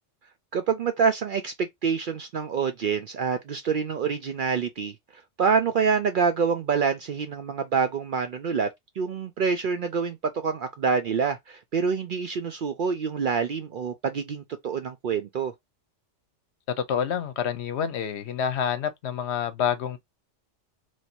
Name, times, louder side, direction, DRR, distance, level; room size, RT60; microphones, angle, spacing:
voice 1, 0.5-4.9 5.4-8.7 9.0-15.5, right 6 dB, 60° right, 0.5 m, -26 dB
voice 2, 16.9-20.0, left 8 dB, 65° left, 0.9 m, -28 dB
3.1 x 2.6 x 4.2 m
omnidirectional pair, 1.2 m